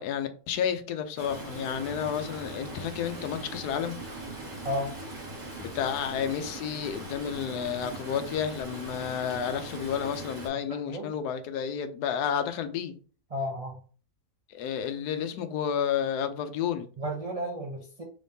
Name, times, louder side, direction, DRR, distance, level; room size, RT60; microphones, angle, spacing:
voice 1, 0.0-4.0 5.6-13.0 14.5-16.9, left 8 dB, 90° left, 1.1 m, -31 dB
Stream, 1.2-10.5, right 2 dB, 30° right, 1.0 m, -40 dB
voice 2, 10.7-11.1 13.3-13.7 17.0-18.0, equal, 70° right, 0.3 m, -33 dB
3.5 x 3.4 x 2.6 m
omnidirectional pair, 1.6 m